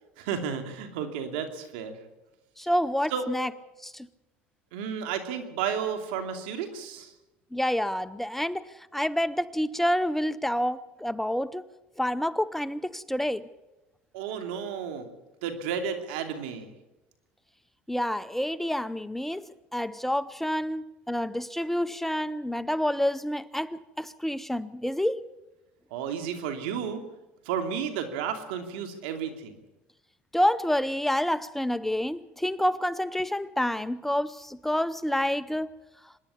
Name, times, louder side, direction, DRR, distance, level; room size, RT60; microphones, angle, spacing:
voice 1, 0.2-2.0 3.1-3.2 4.7-7.1 14.1-15.1 15.4-16.7 25.9-27.0 27.4-29.6, right 7 dB, 80° right, 2.8 m, -32 dB
voice 2, 2.6-3.5 3.8-4.1 7.5-11.7 12.0-13.5 17.9-19.5 19.7-25.2 30.3-35.7, equal, 5° left, 0.6 m, -28 dB
25.0 x 10.5 x 9.7 m
supercardioid pair, 95°, 5 cm